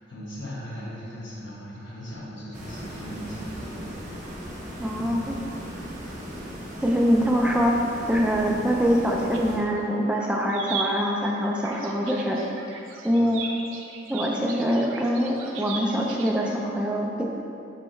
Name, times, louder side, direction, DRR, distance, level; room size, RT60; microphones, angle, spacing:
voice 1, 0.1-3.9 5.0-5.3 13.1-13.3, equal, 70° left, -7 dB, 1.2 m, -38 dB
sound 1, 2.5-9.6, equal, 40° right, 0.8 m, -38 dB
voice 2, 4.8-5.4 6.8-7.8 8.1-12.4 13.0-13.5 14.1-17.2, equal, 5° right, -2 dB, 0.3 m, -24 dB
sound 2, 8.9-9.8 10.1-16.4, right 4 dB, 90° right, 0.4 m, -37 dB
4.6 x 3.1 x 3.1 m, 2.7 s
head